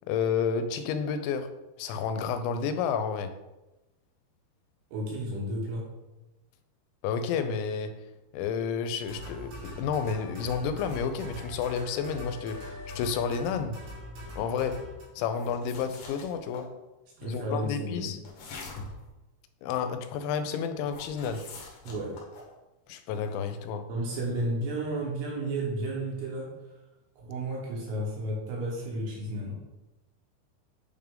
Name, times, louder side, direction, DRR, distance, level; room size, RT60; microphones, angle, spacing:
voice 1, 0.1-1.5 1.8-3.4 7.0-8.0 8.3-13.8 14.4-16.8 17.2-18.2 19.6-21.5 22.9-23.9, left 6 dB, 85° left, 9 dB, 2.9 m, -31 dB
voice 2, 4.9-5.8 17.2-18.1 21.8-22.2 23.9-26.5 27.2-29.5, right 1 dB, 70° right, -2 dB, 2.8 m, -32 dB
sound 1, 9.0-15.0, left 1 dB, 85° right, 4.9 m, -42 dB
sound 2, 15.3-16.7 18.2-19.1 20.9-22.5 24.1-24.4, left 3 dB, 65° left, 2.2 m, -44 dB
8.6 x 3.5 x 3.7 m, 1.0 s
omnidirectional pair, 5.2 m